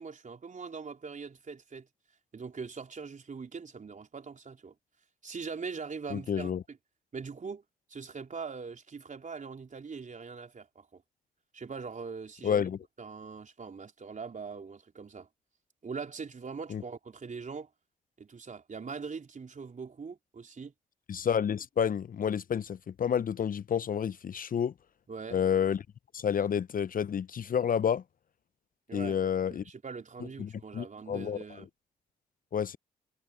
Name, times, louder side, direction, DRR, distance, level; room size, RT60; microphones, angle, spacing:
voice 1, 0.0-1.9 2.3-4.7 5.2-6.8 7.1-7.6 7.9-11.0 11.5-12.7 13.0-15.3 15.8-17.7 18.2-20.7 25.1-25.4 28.9-29.2 29.5-31.7, right 5 dB, 40° right, 3.9 m, -42 dB
voice 2, 6.1-6.6 12.4-12.8 16.7-16.8 21.1-24.7 25.3-25.8 26.1-28.0 28.9-29.6 30.4-31.4 32.5-32.8, left 8 dB, 45° left, 0.9 m, -29 dB
hypercardioid pair, 45°, 19 cm